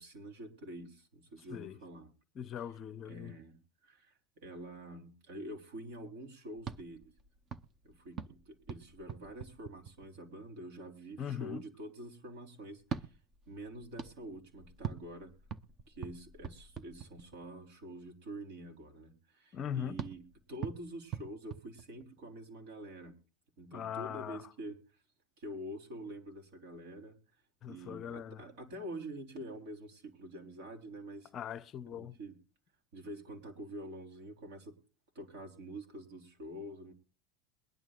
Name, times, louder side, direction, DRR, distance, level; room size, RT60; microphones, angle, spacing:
voice 1, 0.0-2.1 3.1-7.1 7.8-13.1 13.5-15.3 15.9-23.1 23.6-24.8 25.4-27.2 27.7-31.3 31.9-32.4 32.9-34.8 35.2-36.9, right 1 dB, 70° right, 3.6 m, -46 dB
voice 2, 2.3-3.4 11.2-11.6 19.5-20.0 23.7-24.5 27.6-28.5 31.3-32.2, left 9 dB, 30° left, 0.6 m, -40 dB
sound 1, 6.6-10.4 12.8-17.6 20.0-22.4, right 7 dB, 25° right, 0.8 m, -45 dB
22.5 x 11.0 x 2.4 m
supercardioid pair, 160°, 0 cm